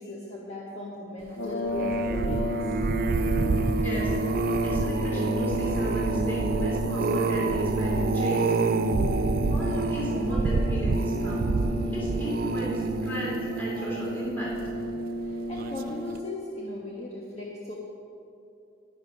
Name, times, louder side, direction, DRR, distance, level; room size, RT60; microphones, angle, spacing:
voice 1, 0.0-2.7 15.2-17.7, left 1 dB, 30° left, -4 dB, 1.2 m, -38 dB
sound 1, 1.3-16.4, left 1 dB, 90° left, 1.1 m, -33 dB
sound 2, 1.7-15.0 15.6-15.9 16.2-16.3, right 3 dB, 45° right, 0.3 m, -27 dB
voice 2, 3.8-4.1 4.6-8.6 9.5-11.4 11.9-14.5, equal, 10° left, -6 dB, 2.9 m, -36 dB
11.5 x 11.0 x 5.1 m, 2.6 s
head